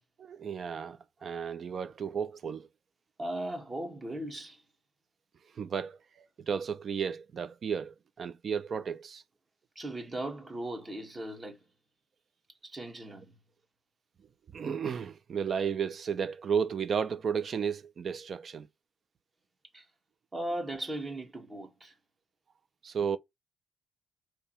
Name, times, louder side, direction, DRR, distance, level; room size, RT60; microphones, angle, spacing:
voice 1, 0.2-2.7 5.6-6.0 6.4-9.2 14.5-18.7 22.8-23.2, right 7 dB, 50° right, 0.5 m, -33 dB
voice 2, 3.2-4.6 9.7-11.6 12.6-13.3 19.7-19.9 20.3-22.0, right 1 dB, 25° right, 1.4 m, -38 dB
3.5 x 3.0 x 4.4 m
cardioid pair, 90°, 0 cm